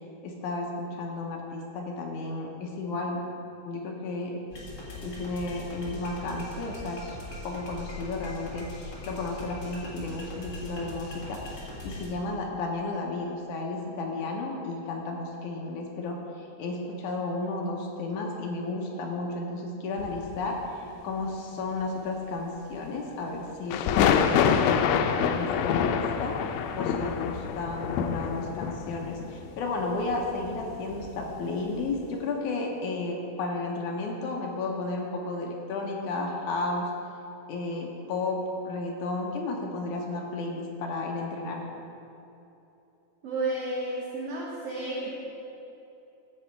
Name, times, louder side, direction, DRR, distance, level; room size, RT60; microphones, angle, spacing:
voice 1, 0.2-4.4 5.0-7.2 7.4-26.4 26.8-36.9 37.5-41.6, left 3 dB, 70° left, 0 dB, 2.1 m, -33 dB
sound 1, 4.5-12.1, left 1 dB, 40° left, 1.7 m, -40 dB
sound 2, 20.0-20.6 23.7-31.4 31.8-32.0, left 7 dB, 85° left, 2.4 m, -27 dB
voice 2, 43.2-45.1, right 2 dB, 65° right, -4 dB, 1.5 m, -31 dB
16.0 x 6.2 x 4.6 m, 2.9 s
omnidirectional pair, 4.2 m